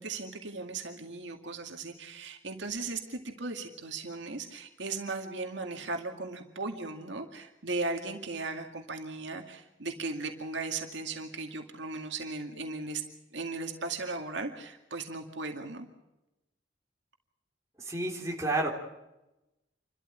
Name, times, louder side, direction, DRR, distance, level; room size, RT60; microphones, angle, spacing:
voice 1, 0.0-13.0 13.3-15.9, right 3 dB, 70° right, 4 dB, 2.1 m, -37 dB
voice 2, 17.8-18.7, right 2 dB, 15° right, -1 dB, 3.5 m, -30 dB
28.5 x 13.0 x 8.8 m, 0.97 s
head